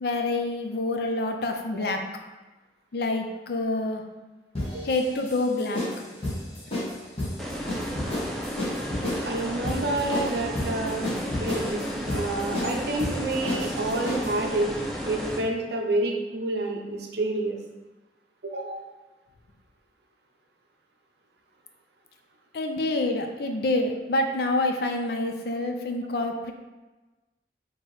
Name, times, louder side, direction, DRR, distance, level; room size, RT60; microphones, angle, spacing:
voice 1, 0.0-2.0 2.9-4.0 4.8-5.8 22.5-26.5, left 2 dB, 60° left, 4 dB, 0.4 m, -27 dB
sound 1, 4.5-14.4, left 1 dB, 35° left, 1.2 m, -32 dB
sound 2, 7.4-15.4, equal, ahead, 0.5 m, -33 dB
voice 2, 9.2-11.0 11.4-14.7 15.0-17.6 18.4-18.8 25.6-25.7, right 2 dB, 60° right, 2 dB, 0.6 m, -29 dB
4.6 x 3.0 x 3.0 m, 1.2 s
head